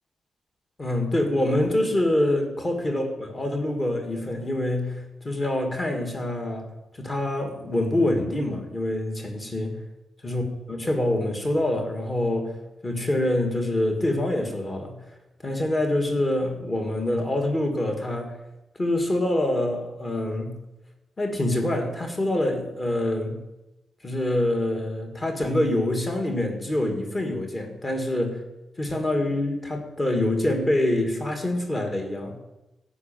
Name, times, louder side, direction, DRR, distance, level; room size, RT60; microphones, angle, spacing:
voice 1, 0.8-9.8 10.2-10.4 10.7-12.6 12.8-15.0 15.4-18.4 18.8-20.6 21.2-23.4 24.0-28.4 28.8-32.4, left 1 dB, 20° left, 3 dB, 2.1 m, -25 dB
15.0 x 5.6 x 9.0 m, 0.97 s
wide cardioid pair, 170°, 0 cm